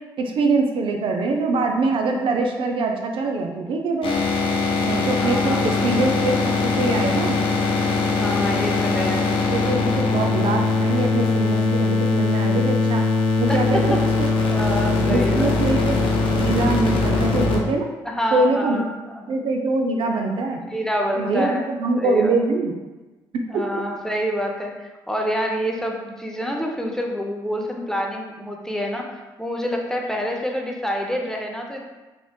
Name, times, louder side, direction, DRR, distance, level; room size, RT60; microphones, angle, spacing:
voice 1, 0.0-4.1 4.8-7.4 9.5-13.1 13.4-14.0 15.0-16.0 16.4-17.9 18.3-18.8 19.3-20.6 21.2-22.8 23.3-23.8, right 3 dB, 55° right, 3 dB, 0.4 m, -23 dB
sound 1, 4.0-17.6, left 3 dB, 55° left, 0.6 m, -21 dB
voice 2, 5.2-6.0 8.2-9.3 13.5-14.0 14.5-15.6 18.0-18.8 19.1-19.5 20.7-21.6 22.0-22.4 23.5-31.9, equal, 5° left, 1 dB, 0.5 m, -27 dB
3.0 x 3.0 x 2.2 m, 1.2 s
hypercardioid pair, 50°, 11 cm